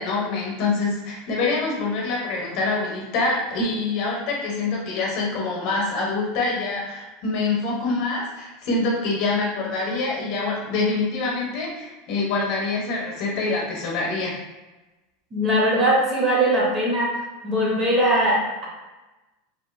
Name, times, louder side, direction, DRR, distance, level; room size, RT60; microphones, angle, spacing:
voice 1, 0.0-14.4, left 3 dB, 50° left, -2 dB, 0.8 m, -25 dB
voice 2, 15.3-17.1 17.4-18.7, right 1 dB, 25° right, -4 dB, 0.7 m, -20 dB
2.8 x 2.5 x 2.4 m, 1.1 s
supercardioid pair, 160°, 0 cm